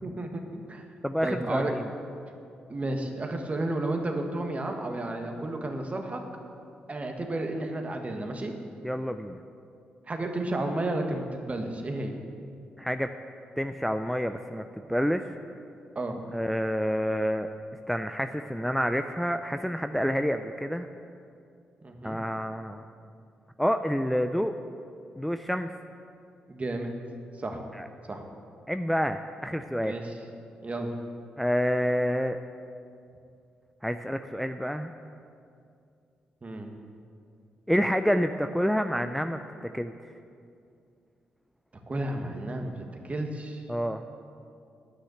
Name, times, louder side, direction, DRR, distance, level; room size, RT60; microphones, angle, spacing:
voice 1, 0.0-0.8 1.2-1.7 2.7-6.2 6.9-8.5 10.1-12.1 15.9-16.2 21.8-22.2 26.5-26.9 27.4-27.6 28.1-28.2 29.8-30.1 30.6-30.9 36.4-36.7 41.9-43.6, right 2 dB, 35° right, 3 dB, 1.5 m, -32 dB
voice 2, 1.0-1.8 8.8-9.4 12.8-13.1 13.6-15.3 16.3-17.5 17.9-20.9 22.0-22.8 23.6-24.5 25.2-25.7 27.7-27.9 28.7-29.9 31.4-32.4 33.8-34.9 37.7-39.4 39.7-40.0 43.7-44.0, equal, ahead, 7 dB, 0.5 m, -28 dB
9.8 x 6.4 x 7.8 m, 2.4 s
supercardioid pair, 45°, 4 cm